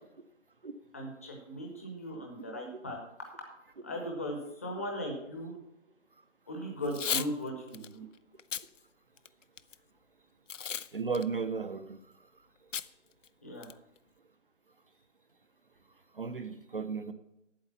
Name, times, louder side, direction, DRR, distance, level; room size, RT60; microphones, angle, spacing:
voice 1, 0.9-3.0 3.4-3.5 3.8-5.6 6.5-8.0 13.4-13.7, equal, 10° left, 1 dB, 0.8 m, -38 dB
Packing tape duct tape / Tearing, 6.8-7.3 7.7-7.9 8.4-8.7 9.2-9.7 10.5-10.9 11.1-11.2 12.7-12.9 13.2-13.3 13.6-14.0, left 7 dB, 85° left, 0.6 m, -34 dB
voice 2, 10.9-12.0 16.2-17.1, right 5 dB, 45° right, 8 dB, 0.7 m, -34 dB
8.7 x 7.8 x 7.0 m, 0.86 s
figure-of-eight pair, 160°, 37 cm